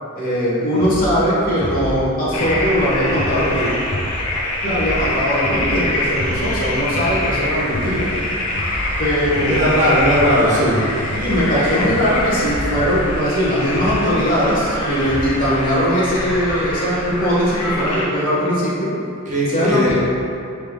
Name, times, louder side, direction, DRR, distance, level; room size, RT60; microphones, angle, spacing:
voice 1, 0.1-3.7 4.6-8.1 9.0-9.7 11.2-18.9 19.5-19.9, equal, 40° left, -8 dB, 1.1 m, -20 dB
sound 1, 0.8-15.5, equal, 25° left, 0.4 m, -30 dB
sound 2, 2.3-18.1, left 1 dB, 75° left, 0.6 m, -25 dB
voice 2, 9.5-10.8 19.3-19.9, equal, 35° right, -7 dB, 0.8 m, -17 dB
4.8 x 3.3 x 2.2 m, 2.6 s
head